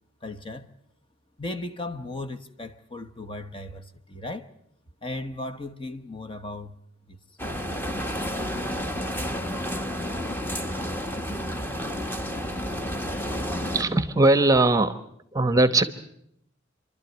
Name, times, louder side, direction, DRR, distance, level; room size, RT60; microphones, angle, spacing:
voice 1, 0.2-0.7 1.4-4.5 5.0-6.8 7.1-7.2, left 2 dB, 25° left, 1.1 m, -36 dB
sound 1, 7.4-13.8, equal, 10° left, 1.3 m, -30 dB
voice 2, 13.7-15.0 15.3-15.8, right 2 dB, 20° right, 1.0 m, -20 dB
28.0 x 12.5 x 9.4 m
head